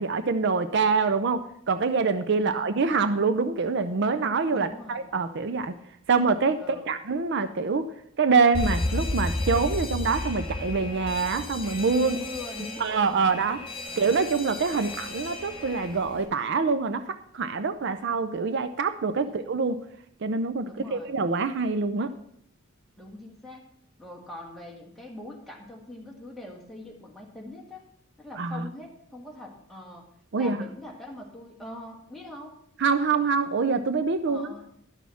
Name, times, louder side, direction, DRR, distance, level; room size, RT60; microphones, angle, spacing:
voice 1, 0.0-5.8 6.1-7.9 8.2-12.2 12.8-13.6 14.0-19.8 20.2-22.1 28.4-28.7 30.3-30.6 32.8-34.5, right 4 dB, 55° right, 10 dB, 0.5 m, -25 dB
voice 2, 2.3-2.7 4.5-5.1 6.6-7.0 12.0-13.3 13.8-14.1 19.2-19.6 20.6-21.1 23.0-23.7 24.0-27.8 28.2-30.1 30.4-32.6 34.3-34.8, left 1 dB, ahead, -2 dB, 1.8 m, -42 dB
Alarm, 8.5-16.2, left 2 dB, 25° left, 1.7 m, -33 dB
11.5 x 6.3 x 6.9 m, 0.70 s
head